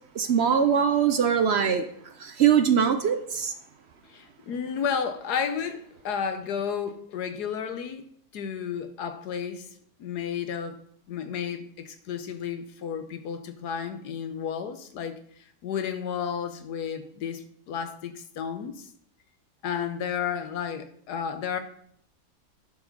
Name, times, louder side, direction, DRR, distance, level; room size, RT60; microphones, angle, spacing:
voice 1, 0.1-1.9 2.2-3.5, right 7 dB, 55° right, 0.7 m, -22 dB
voice 2, 4.1-8.1 8.3-9.7 10.0-10.8 11.1-18.9 19.6-21.6, left 7 dB, 80° left, 1.4 m, -32 dB
10.0 x 4.9 x 5.3 m
omnidirectional pair, 1.7 m